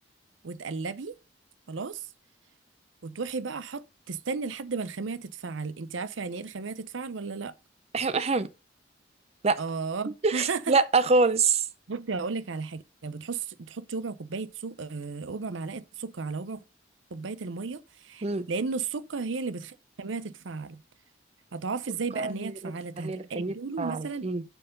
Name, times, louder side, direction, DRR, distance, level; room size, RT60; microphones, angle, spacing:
voice 1, 0.4-1.2 1.7-2.1 3.0-7.5 9.6-10.7 11.9-16.6 17.1-20.8 21.5-24.3, right 4 dB, 85° right, 0.7 m, -34 dB
voice 2, 7.9-8.5 9.4-9.6 10.2-11.6 18.2-18.5 22.2-24.4, right 4 dB, 35° right, 0.5 m, -26 dB
8.8 x 4.7 x 5.3 m
head